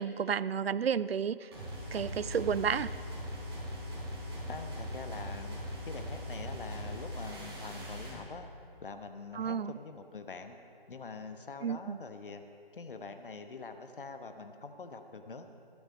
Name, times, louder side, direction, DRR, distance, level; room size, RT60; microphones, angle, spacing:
voice 1, 0.0-1.5 1.9-2.9 9.4-9.7 11.6-12.0, right 7 dB, 75° right, 18 dB, 0.5 m, -31 dB
sound 1, 1.5-8.2, equal, 25° right, 3.8 m, -40 dB
voice 2, 4.5-8.5 8.8-10.6 10.9-12.4 12.7-15.5, left 4 dB, 60° left, 7 dB, 1.1 m, -45 dB
14.0 x 11.5 x 5.4 m, 2.5 s
figure-of-eight pair, 165°, 31 cm